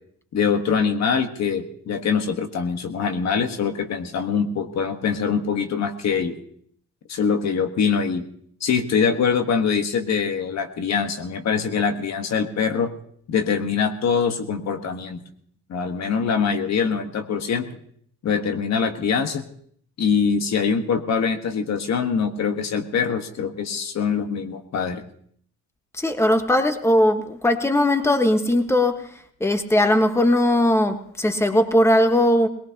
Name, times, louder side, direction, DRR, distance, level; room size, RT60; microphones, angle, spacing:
voice 1, 0.3-6.3 7.1-8.2 8.6-12.9 13.3-15.2 15.7-17.7 18.2-19.4 20.0-25.0, left 6 dB, 60° left, 6 dB, 1.4 m, -23 dB
voice 2, 26.0-29.0 29.4-32.5, left 1 dB, 10° left, 7 dB, 1.4 m, -19 dB
20.5 x 18.5 x 2.9 m, 0.63 s
cardioid pair, 90°, 30 cm